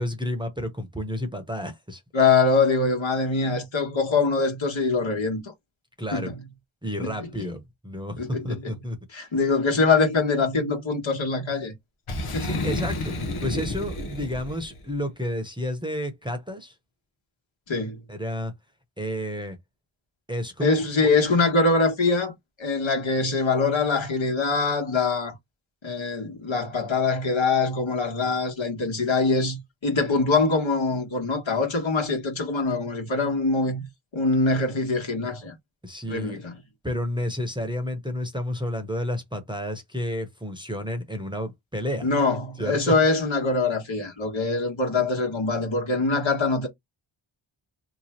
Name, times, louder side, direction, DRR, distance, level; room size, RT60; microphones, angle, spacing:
voice 1, 0.0-2.0 6.0-6.3 6.8-9.0 12.4-13.1 13.4-16.7 18.1-18.5 19.0-19.6 20.3-21.1 35.8-36.4 36.8-42.1 42.6-42.9, equal, 10° right, 0.9 m, -31 dB
voice 2, 2.1-5.4 6.1-6.3 7.0-7.3 8.2-8.7 9.1-11.7 12.3-12.6 17.7-18.0 20.6-25.3 25.8-33.9 34.1-35.5 36.1-36.6 42.0-46.7, left 3 dB, 65° left, 1.4 m, -23 dB
Boom, 12.1-14.8, left 2 dB, 85° left, 1.0 m, -30 dB
3.1 x 2.3 x 4.3 m
cardioid pair, 45°, 49 cm